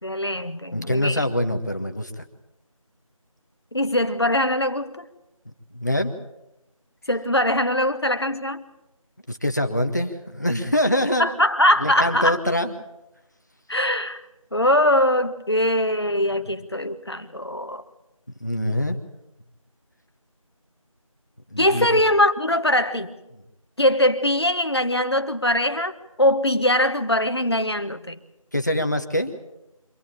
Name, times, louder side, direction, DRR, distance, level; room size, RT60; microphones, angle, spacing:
voice 1, 0.0-1.2 3.7-5.1 7.1-8.6 11.2-12.4 13.7-14.2 14.5-17.8 21.6-23.2 23.8-28.2, left 1 dB, 45° left, 1.5 m, -22 dB
voice 2, 0.7-2.2 5.4-6.1 9.3-11.3 11.8-12.7 18.4-19.0 21.5-21.9 28.5-29.3, left 1 dB, 30° left, 1.5 m, -24 dB
25.0 x 15.0 x 8.8 m
figure-of-eight pair, 175°, 18 cm